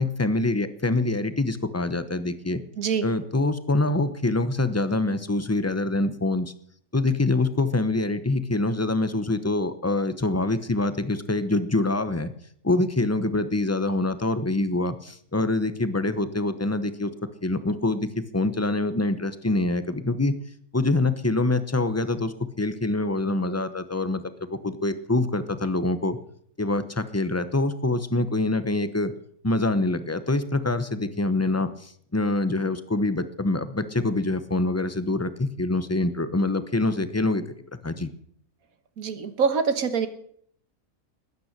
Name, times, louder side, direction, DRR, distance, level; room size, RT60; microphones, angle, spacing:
voice 1, 0.0-2.6 3.0-6.5 6.9-12.3 12.6-17.1 17.4-20.3 20.7-26.2 26.6-29.1 29.4-37.4 37.8-38.1, left 2 dB, 15° left, 12 dB, 0.8 m, -25 dB
voice 2, 2.8-3.1 39.0-40.1, right 6 dB, 80° right, 10 dB, 1.8 m, -25 dB
20.5 x 9.5 x 6.7 m, 0.64 s
omnidirectional pair, 1.5 m